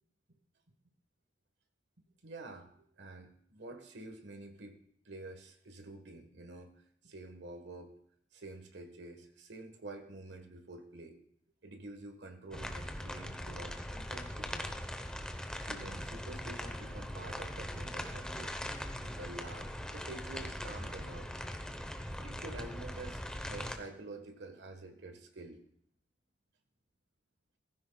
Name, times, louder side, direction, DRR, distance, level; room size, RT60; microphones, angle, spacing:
voice 1, 2.2-2.7 3.0-4.8 5.0-6.7 7.0-7.9 8.3-11.2 11.6-14.7 15.7-18.5 19.0-21.4 22.2-25.6, right 2 dB, 65° right, 5 dB, 1.4 m, -48 dB
sound 1, 12.5-23.8, equal, 5° left, 0.9 m, -41 dB
15.5 x 15.0 x 2.3 m, 0.67 s
head